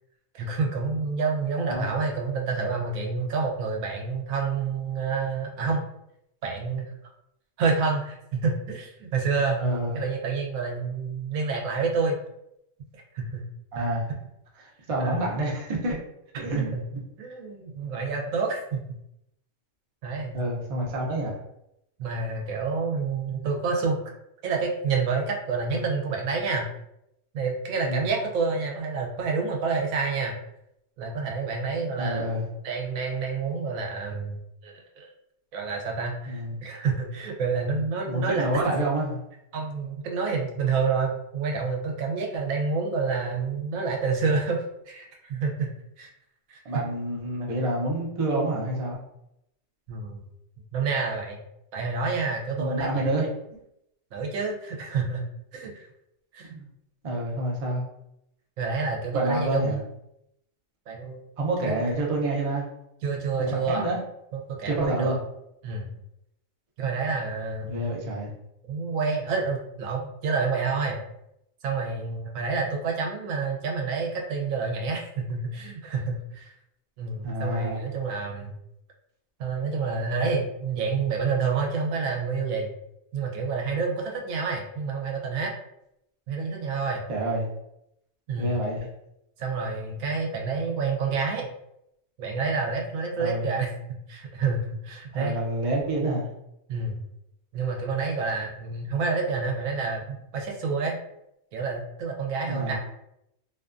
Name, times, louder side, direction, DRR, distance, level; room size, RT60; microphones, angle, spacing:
voice 1, 0.3-5.8 6.4-6.9 7.6-9.6 9.9-12.2 12.9-13.4 15.0-15.2 16.6-16.8 17.2-19.0 20.0-20.4 22.0-24.0 24.4-26.7 27.3-30.3 31.0-35.1 35.5-38.5 39.5-45.7 46.0-46.1 46.5-46.8 49.9-50.2 50.7-51.4 51.7-53.1 54.1-55.2 55.5-55.9 56.3-56.5 58.6-59.9 60.9-61.2 61.6-61.8 63.0-63.9 64.3-65.2 65.6-65.9 66.8-68.1 68.7-71.0 71.6-76.5 77.0-78.5 79.4-82.7 83.1-85.5 86.3-87.0 88.3-88.5 89.4-91.5 92.2-93.7 94.1-95.4 96.7-97.0 97.5-101.0 101.5-102.8, right 4 dB, 85° right, 0 dB, 1.0 m, -28 dB
voice 2, 1.6-1.9 9.6-10.0 13.7-14.0 14.6-16.0 16.4-16.7 20.3-21.4 27.8-28.1 32.0-32.5 36.3-36.6 38.0-39.2 46.6-49.0 52.6-53.3 56.4-56.7 57.0-57.8 59.1-59.8 61.4-62.6 63.4-64.0 64.6-65.2 67.7-68.3 77.2-77.8 87.1-87.4 88.4-88.9 93.2-93.5 95.1-96.3 102.5-102.8, right 1 dB, 50° right, -3 dB, 0.4 m, -28 dB
2.6 x 2.2 x 2.4 m, 0.81 s
omnidirectional pair, 1.4 m